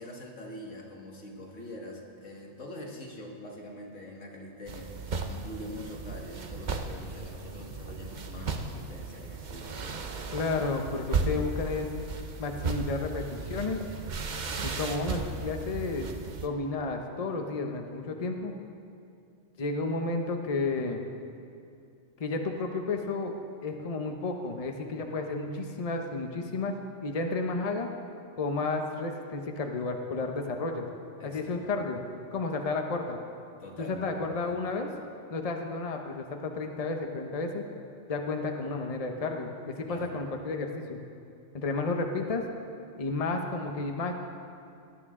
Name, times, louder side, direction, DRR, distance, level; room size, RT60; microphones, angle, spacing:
voice 1, 0.0-4.9 5.3-9.8 31.2-31.6 33.6-34.2 34.4-34.6 39.9-40.2, left 1 dB, 85° left, 0 dB, 2.0 m, -44 dB
sound 1, 4.7-16.5, right 4 dB, 45° right, 0.8 m, -35 dB
voice 2, 10.3-11.9 12.4-13.8 14.6-16.1 16.4-18.5 19.6-21.0 22.2-23.4 23.6-26.7 27.0-27.9 28.4-30.9 31.2-32.0 32.3-33.2 33.8-34.9 35.3-37.6 38.1-41.0 41.5-42.5 43.0-44.1, left 3 dB, 35° left, 3 dB, 0.9 m, -32 dB
18.0 x 11.0 x 3.7 m, 2.5 s
omnidirectional pair, 1.3 m